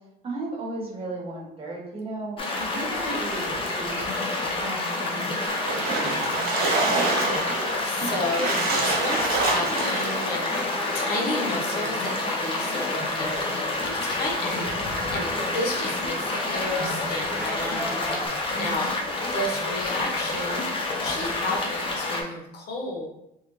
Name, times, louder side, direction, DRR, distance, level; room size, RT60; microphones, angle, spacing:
voice 1, 0.2-6.0 18.5-18.9, right 2 dB, 35° right, -2 dB, 1.0 m, -36 dB
sound 1, 2.4-22.2, left 2 dB, 30° left, 0.7 m, -28 dB
Splash splatter, 5.5-10.4, right 2 dB, 65° right, 1.2 m, -26 dB
voice 2, 7.7-18.0 18.3-18.9 19.3-20.6 20.9-23.1, left 2 dB, 65° left, 0 dB, 0.8 m, -32 dB
sound 2, 10.3-18.3, equal, 5° right, 0.4 m, -38 dB
3.5 x 2.1 x 3.0 m, 0.83 s
cardioid pair, 110°, 17 cm